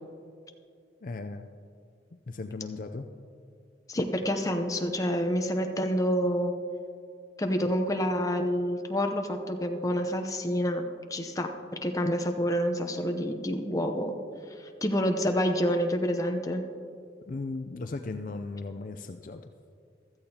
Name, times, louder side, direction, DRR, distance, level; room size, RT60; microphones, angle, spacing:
voice 1, 1.0-1.5 2.3-3.1 17.3-19.4, left 3 dB, 45° left, 7 dB, 0.4 m, -36 dB
voice 2, 3.9-6.5 7.4-10.8 11.1-11.5 11.8-14.1 14.6-16.6, equal, 20° left, 5 dB, 0.7 m, -28 dB
15.5 x 13.5 x 2.9 m, 2.4 s
head